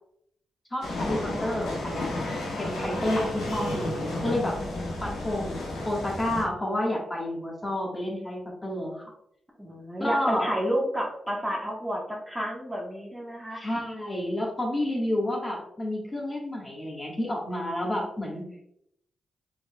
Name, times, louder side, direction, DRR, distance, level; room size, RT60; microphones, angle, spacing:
voice 1, 0.7-2.1 2.6-4.6 5.0-5.6 5.8-9.1 10.0-10.5 13.5-18.5, left 1 dB, 25° left, -2 dB, 1.6 m, -30 dB
sound 1, 0.8-6.4, left 1 dB, 85° left, 1.3 m, -32 dB
voice 2, 3.4-3.9 9.6-13.6, equal, 5° right, -3 dB, 1.4 m, -31 dB
5.0 x 3.8 x 2.3 m, 0.74 s
supercardioid pair, 50°, 0 cm